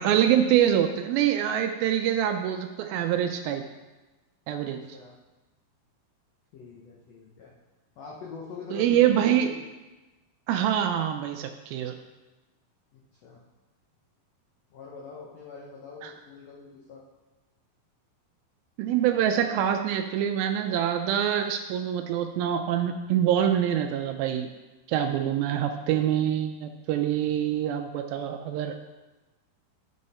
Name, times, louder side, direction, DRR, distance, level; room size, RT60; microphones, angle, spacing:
voice 1, 0.0-3.6 4.5-4.8 8.7-9.5 10.5-12.0 16.0-16.1 18.8-24.5 24.9-28.8, right 10 dB, 85° right, 5 dB, 2.3 m, -25 dB
voice 2, 4.8-5.2 6.5-7.6 8.0-9.6 12.9-13.4 14.7-17.0, left 5 dB, 75° left, -3 dB, 1.5 m, -44 dB
10.5 x 5.5 x 4.2 m, 1.1 s
omnidirectional pair, 4.3 m